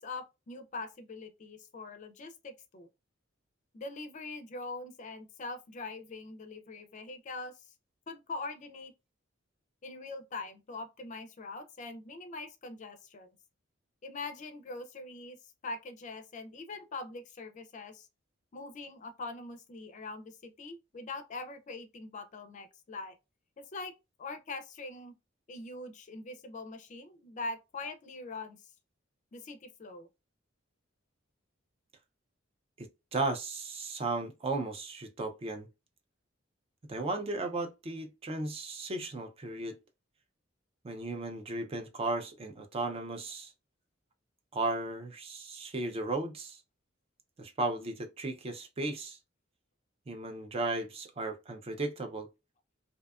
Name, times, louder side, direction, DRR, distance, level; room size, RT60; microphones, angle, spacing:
voice 1, 0.0-2.9 3.7-7.7 8.1-8.9 9.8-13.3 14.0-15.4 15.6-18.1 18.5-23.2 23.6-23.9 24.2-25.1 25.5-28.6 29.3-30.1, left 3 dB, 40° left, 0.4 m, -43 dB
voice 2, 32.8-35.7 36.9-39.8 40.8-43.5 44.5-46.6 47.4-49.2 50.1-52.3, right 2 dB, 30° right, 0.4 m, -35 dB
2.6 x 2.3 x 2.3 m
head